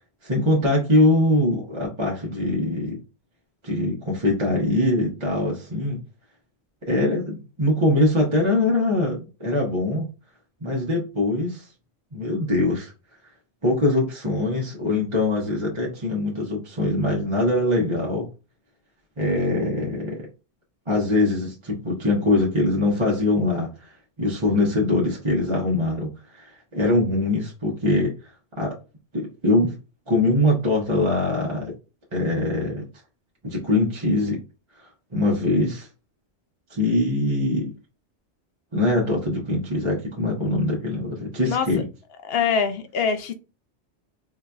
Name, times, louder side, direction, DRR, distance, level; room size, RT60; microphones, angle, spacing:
voice 1, 0.2-3.0 3.6-6.0 6.8-10.1 10.6-11.7 12.1-12.9 13.6-18.3 19.2-20.3 20.9-28.7 29.1-29.8 30.1-31.7 32.1-32.8 33.4-34.4 34.8-35.9 36.7-37.7 38.7-41.9, left 2 dB, 30° right, -3 dB, 0.8 m, -23 dB
voice 2, 42.2-43.3, left 6 dB, 65° left, 8 dB, 0.8 m, -23 dB
3.8 x 2.6 x 2.3 m, 0.30 s
omnidirectional pair, 1.1 m